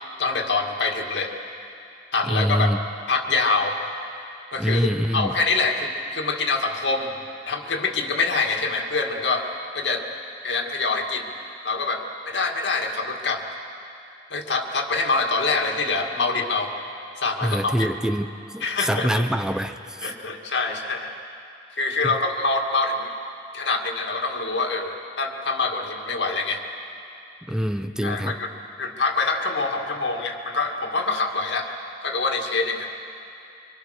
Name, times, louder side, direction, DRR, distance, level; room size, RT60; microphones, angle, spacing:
voice 1, 0.2-1.3 2.1-2.7 3.1-3.8 4.5-7.1 7.5-10.0 10.4-11.3 11.6-13.4 14.3-16.7 17.2-17.7 18.6-19.2 20.0-21.1 21.7-23.1 23.5-26.6 28.0-28.5 28.8-31.7 32.0-32.9, left 3 dB, 85° left, 3 dB, 2.1 m, -25 dB
voice 2, 2.3-2.8 4.6-5.3 17.4-20.1 27.5-28.4, equal, 5° right, 8 dB, 0.6 m, -25 dB
25.0 x 24.5 x 6.5 m, 2.7 s
head